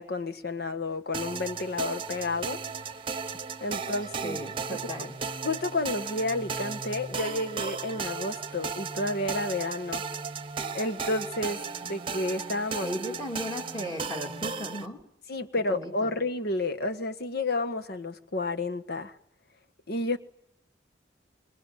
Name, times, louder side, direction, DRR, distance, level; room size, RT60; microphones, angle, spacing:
voice 1, 0.0-2.6 3.6-4.4 4.7-5.1 5.4-10.0 10.7-12.9 15.3-19.1 19.9-20.2, left 2 dB, 60° left, 1.6 m, -31 dB
sound 1, 1.1-14.9, right 5 dB, 30° right, 1.1 m, -35 dB
voice 2, 4.2-5.2 12.8-15.0 15.7-16.1, equal, 20° left, 3.1 m, -36 dB
26.0 x 22.5 x 9.2 m
head